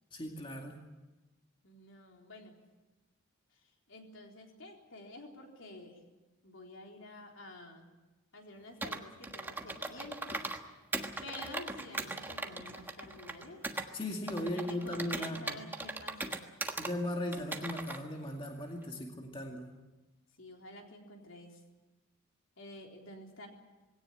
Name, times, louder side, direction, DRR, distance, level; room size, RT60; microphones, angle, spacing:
voice 1, 0.1-0.8 13.9-15.6 16.8-19.7, left 1 dB, 25° left, 1 dB, 2.2 m, -37 dB
voice 2, 1.6-2.6 3.9-6.0 6.4-7.9 8.3-10.5 11.2-13.6 14.5-16.5 20.4-21.6 22.6-23.5, left 2 dB, 65° left, 1 dB, 3.9 m, -50 dB
Computer keyboard, 8.8-10.6 10.9-13.9 14.3-16.9 17.3-18.0, right 2 dB, 10° right, 1.3 m, -39 dB
20.0 x 17.5 x 9.9 m, 1.1 s
head